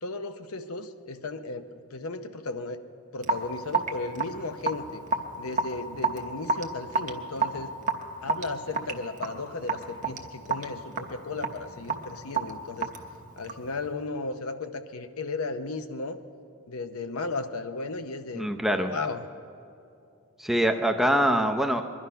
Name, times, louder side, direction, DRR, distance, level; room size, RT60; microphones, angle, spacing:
voice 1, 0.0-2.8 3.1-5.0 5.4-7.7 8.2-12.9 13.4-16.2 16.7-18.5 18.8-19.3, left 3 dB, 80° left, 9 dB, 0.8 m, -35 dB
Raindrop / Drip, 3.2-13.7, right 4 dB, 35° right, 0.9 m, -31 dB
voice 2, 18.3-18.9 20.4-21.8, equal, ahead, 4 dB, 0.6 m, -24 dB
22.0 x 11.5 x 5.6 m, 2.6 s
head